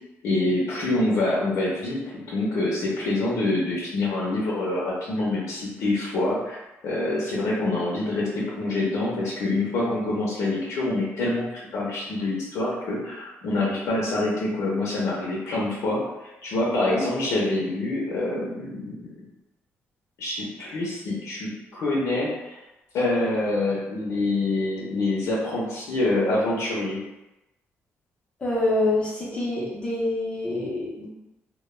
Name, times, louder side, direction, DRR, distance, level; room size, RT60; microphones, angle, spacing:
voice 1, 0.2-11.5 11.7-16.0 16.4-19.1 20.2-22.6 22.9-27.0, left 2 dB, 75° left, -5 dB, 0.6 m, -26 dB
voice 2, 16.7-17.0 28.4-31.1, left 2 dB, 20° left, -6 dB, 0.6 m, -26 dB
2.2 x 2.1 x 3.1 m, 0.99 s
cardioid pair, 180°, 5 cm